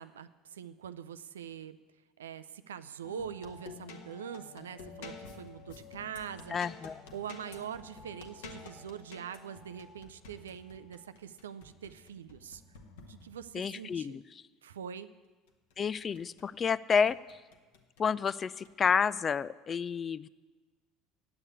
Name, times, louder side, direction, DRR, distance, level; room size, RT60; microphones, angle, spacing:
voice 1, 0.0-1.8 2.2-6.5 7.1-12.6 13.1-14.2 14.6-15.1, right 8 dB, 70° right, 13 dB, 0.4 m, -43 dB
sound 1, 3.0-13.7 15.5-16.7 17.1-18.1 18.6-19.0, left 4 dB, 65° left, 1.1 m, -50 dB
voice 2, 6.5-7.0 13.5-14.2 15.8-17.2 18.0-20.3, left 6 dB, 30° left, 19 dB, 0.3 m, -30 dB
9.7 x 8.1 x 8.7 m, 1.3 s
figure-of-eight pair, 65°, 0 cm